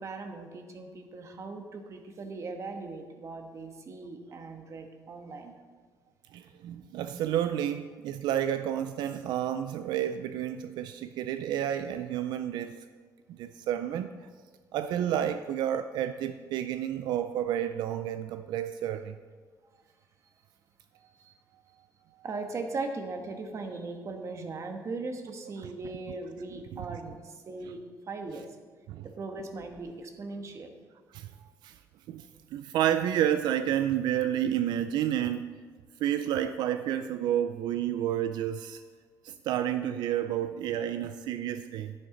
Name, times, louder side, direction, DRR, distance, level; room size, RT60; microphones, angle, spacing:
voice 1, 0.0-5.5 21.2-21.3 22.2-28.5 29.0-30.7, right 3 dB, 45° right, 5 dB, 1.3 m, -39 dB
voice 2, 6.3-12.8 13.3-14.1 14.7-19.2 25.6-25.7 26.8-26.9 28.9-29.1 31.1-31.8 32.1-35.6 36.0-38.8 39.2-41.9, right 10 dB, 90° right, 10 dB, 0.4 m, -30 dB
10.0 x 9.8 x 3.9 m, 1.5 s
cardioid pair, 110°, 7 cm